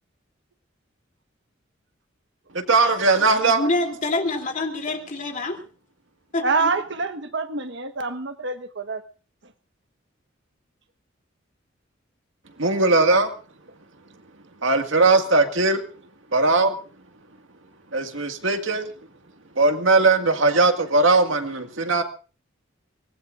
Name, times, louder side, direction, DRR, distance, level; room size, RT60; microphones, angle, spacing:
voice 1, 2.7-3.6 12.6-13.3 14.6-15.8 16.3-16.8 17.9-18.9 19.6-22.0, right 3 dB, 85° right, 2.0 m, -19 dB
voice 2, 3.5-5.6 6.3-6.7, left 2 dB, 40° left, 3.1 m, -26 dB
voice 3, 6.4-9.0, right 4 dB, 65° right, 1.4 m, -26 dB
24.0 x 19.5 x 2.6 m
head